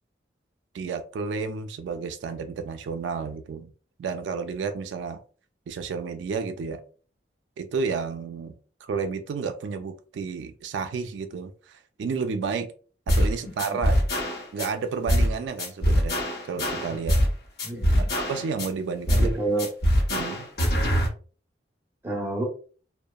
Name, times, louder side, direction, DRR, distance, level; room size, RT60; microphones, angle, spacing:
voice 1, 0.7-3.7 4.0-5.2 5.7-6.8 7.6-8.5 8.8-12.7 13.1-14.0 14.5-16.2 16.5-17.2 18.0-19.3 20.1-20.5, right 5 dB, 80° right, 8 dB, 0.3 m, -31 dB
sound 1, 13.1-13.3 13.6-14.7 15.1-15.3 15.6-17.3 17.6-18.7 19.1-19.3 19.6-21.1, equal, 60° left, 0.7 m, -23 dB
voice 2, 13.4-13.8 17.6-18.1 19.1-19.7 22.0-22.5, right 2 dB, 15° right, -1 dB, 0.6 m, -29 dB
2.8 x 2.0 x 2.2 m, 0.40 s
head